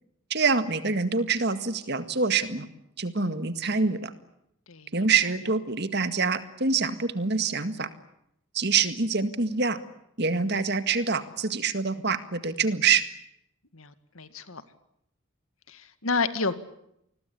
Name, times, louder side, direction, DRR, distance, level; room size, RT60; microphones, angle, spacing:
voice 1, 0.3-2.7 3.0-4.1 4.9-7.9 8.5-9.8 10.2-13.0, right 5 dB, 50° right, 11 dB, 1.9 m, -25 dB
voice 2, 13.7-14.6 15.7-16.5, left 4 dB, 75° left, 12 dB, 2.1 m, -30 dB
28.0 x 21.0 x 8.5 m, 0.77 s
head